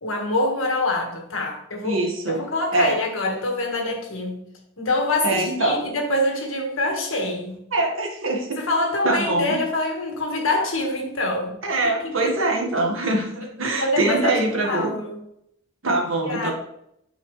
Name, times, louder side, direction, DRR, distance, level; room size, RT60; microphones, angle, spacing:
voice 1, 0.0-2.0 2.3-4.5 4.8-7.6 8.6-11.6 11.8-12.3 13.6-14.4 14.6-15.2 16.2-16.5, left 2 dB, 80° left, 1.7 m, -25 dB
voice 2, 1.8-2.4 2.7-3.0 5.2-5.8 7.7-8.6 9.0-9.6 11.6-14.9 15.8-16.5, right 2 dB, 80° right, 1.6 m, -23 dB
9.7 x 4.9 x 3.2 m
head